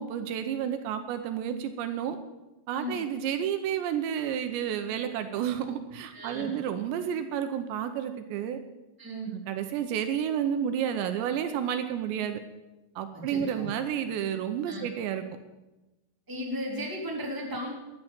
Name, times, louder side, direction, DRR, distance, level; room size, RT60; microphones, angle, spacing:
voice 1, 0.0-2.2 2.7-8.6 9.3-12.4 13.0-15.2, right 9 dB, 80° right, 8 dB, 3.1 m, -31 dB
voice 2, 6.1-6.5 9.0-9.3 13.1-13.7 14.6-14.8 16.3-17.7, equal, 5° right, -2 dB, 3.0 m, -35 dB
13.0 x 10.5 x 8.9 m, 1.0 s
omnidirectional pair, 5.2 m